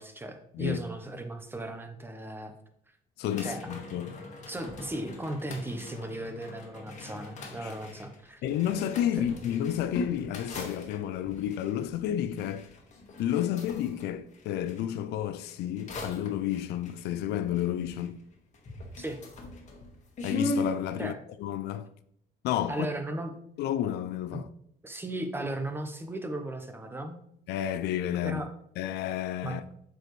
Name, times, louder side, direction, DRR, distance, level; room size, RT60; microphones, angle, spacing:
voice 1, 0.0-2.5 3.4-3.7 4.5-8.4 9.2-9.3 19.0-19.2 21.0-21.2 22.7-23.3 24.3-24.4 24.8-27.2 28.2-28.5 29.4-29.6, right 1 dB, 15° right, 0.9 m, -36 dB
voice 2, 3.2-4.2 7.6-7.7 8.4-12.7 13.2-18.2 20.2-21.1 21.4-21.9 22.4-22.9 23.6-24.5 27.5-28.4 28.8-29.6, left 11 dB, 75° left, 0.5 m, -31 dB
sound 1, 3.2-14.8 15.4-18.3 18.5-20.8, left 2 dB, 45° left, 1.5 m, -40 dB
7.5 x 4.8 x 3.1 m
cardioid pair, 110°, 17 cm